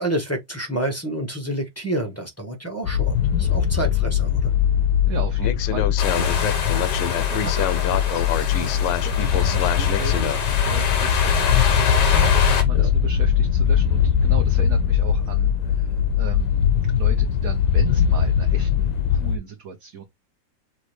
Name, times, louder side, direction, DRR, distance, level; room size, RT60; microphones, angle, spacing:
voice 1, 0.0-4.5 12.1-12.3 12.7-12.9, right 1 dB, 15° left, 0.7 m, -29 dB
sound 1, 2.8-19.4, left 8 dB, 85° left, 1.3 m, -20 dB
voice 2, 5.1-11.4 12.5-16.7 16.9-20.0, right 6 dB, 60° right, 1.1 m, -37 dB
sound 2, 6.0-12.6, left 5 dB, 70° left, 1.8 m, -27 dB
6.1 x 2.8 x 3.1 m
omnidirectional pair, 1.9 m